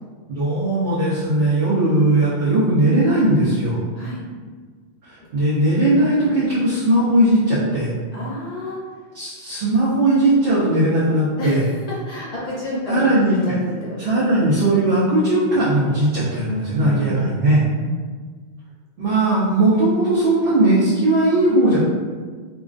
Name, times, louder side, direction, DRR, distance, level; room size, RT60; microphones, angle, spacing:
voice 1, 0.3-3.8 5.3-7.9 9.1-11.6 12.9-13.4 14.0-17.6 19.0-21.8, right 1 dB, 60° right, -10 dB, 0.8 m, -18 dB
voice 2, 8.1-8.8 10.2-10.4 11.4-14.5 16.4-18.1, equal, 50° left, -7 dB, 0.5 m, -30 dB
2.3 x 2.3 x 2.3 m, 1.5 s
omnidirectional pair, 1.1 m